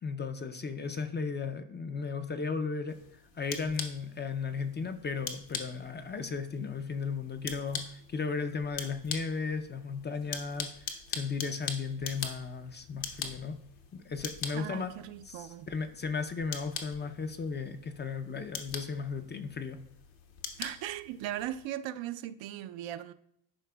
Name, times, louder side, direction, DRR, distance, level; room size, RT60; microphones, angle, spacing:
voice 1, 0.0-3.0 3.4-13.6 13.9-14.9 15.3-19.8, left 5 dB, 25° left, 0.4 m, -35 dB
sound 1, 2.9-21.7, left 6 dB, 70° left, 1.2 m, -43 dB
voice 2, 14.5-15.7 20.6-23.1, right 12 dB, 70° right, 0.5 m, -38 dB
11.5 x 4.8 x 2.3 m
cardioid pair, 95°, 48 cm